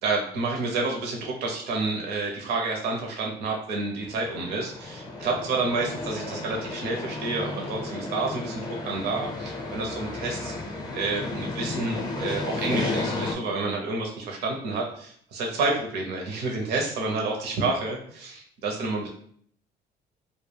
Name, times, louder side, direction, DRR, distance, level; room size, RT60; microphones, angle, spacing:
voice 1, 0.0-10.5 10.9-19.1, right 3 dB, 75° right, 0 dB, 0.6 m, -29 dB
sound 1, 4.0-13.3, left 2 dB, 25° left, 0.5 m, -33 dB
2.2 x 2.1 x 3.2 m, 0.62 s
cardioid pair, 110°, 17 cm